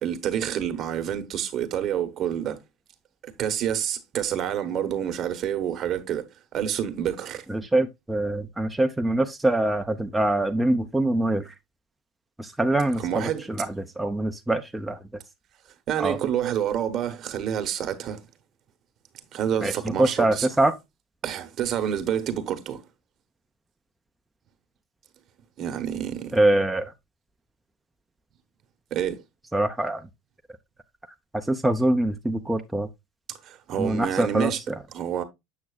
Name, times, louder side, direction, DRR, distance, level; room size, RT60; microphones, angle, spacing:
voice 1, 0.0-2.6 3.2-6.3 6.5-7.4 13.0-13.4 15.9-18.2 19.3-20.5 21.2-22.8 25.6-26.4 28.9-29.2 33.4-34.6 34.9-35.2, right 9 dB, 50° right, 1.1 m, -28 dB
voice 2, 7.5-11.5 12.4-15.0 16.0-16.2 19.6-19.7 20.0-20.8 26.3-26.9 29.5-30.0 31.5-32.9 33.8-34.8, right 1 dB, 10° right, 0.6 m, -24 dB
7.4 x 6.2 x 2.3 m
hypercardioid pair, 80°, 0 cm